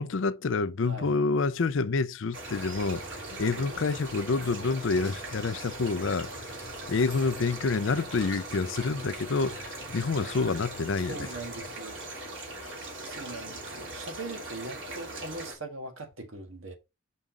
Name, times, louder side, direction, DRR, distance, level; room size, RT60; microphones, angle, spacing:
voice 1, 0.0-11.3 12.6-12.7, left 4 dB, 75° left, 0.5 m, -28 dB
voice 2, 0.8-1.2 4.9-5.2 11.1-12.1 13.0-16.7, right 2 dB, 85° right, 1.6 m, -41 dB
sound 1, 2.3-15.5, right 2 dB, 70° right, 3.1 m, -40 dB
sound 2, 2.4-11.8, equal, 50° right, 2.3 m, -48 dB
6.1 x 5.5 x 3.8 m
head